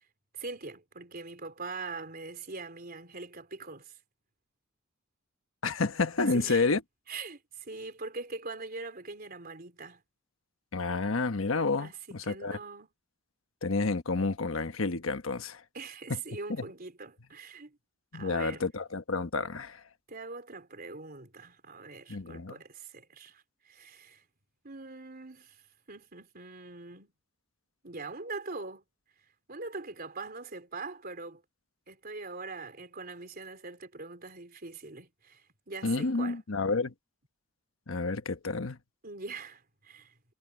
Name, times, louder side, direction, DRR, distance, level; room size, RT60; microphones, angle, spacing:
voice 1, 0.3-4.0 6.2-6.7 7.1-10.0 11.8-12.9 15.7-17.8 18.1-18.6 20.1-24.2 24.6-25.6 25.9-27.1 27.8-28.8 29.5-31.4 31.9-36.4 39.0-40.1, right 3 dB, 45° right, 3.8 m, -42 dB
voice 2, 5.6-6.8 10.7-12.6 13.6-15.6 16.1-16.2 16.5-16.6 18.1-19.8 22.1-22.6 35.8-36.9 37.9-38.8, left 3 dB, 70° left, 1.2 m, -30 dB
head